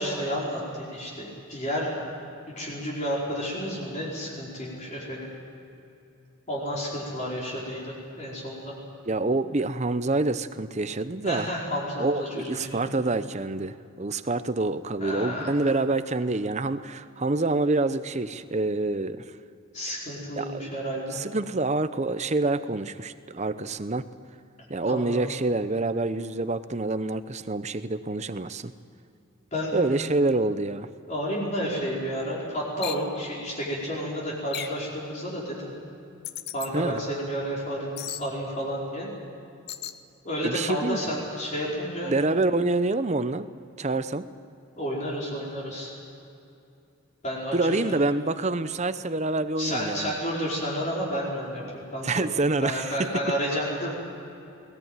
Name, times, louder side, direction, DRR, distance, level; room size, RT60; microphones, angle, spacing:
voice 1, 0.0-2.0 2.6-5.3 6.5-8.7 11.2-12.9 15.0-15.5 19.7-21.2 24.8-25.2 29.5-29.8 31.1-35.7 36.5-39.1 40.2-42.1 44.8-45.9 47.2-48.0 49.6-52.3 52.6-53.9, equal, 35° left, -5 dB, 5.1 m, -31 dB
voice 2, 9.1-11.5 12.0-19.3 20.3-20.7 21.1-24.0 24.7-28.7 29.7-30.9 36.7-37.0 40.4-41.2 42.0-43.5 43.8-44.3 47.5-50.1 52.0-53.1, right 2 dB, 35° right, 12 dB, 0.7 m, -27 dB
sound 1, 32.8-33.1 34.5-34.8 36.2-36.7 38.0-38.3 39.7-40.0, left 10 dB, 50° left, 0.9 m, -35 dB
22.0 x 19.0 x 9.2 m, 2.7 s
head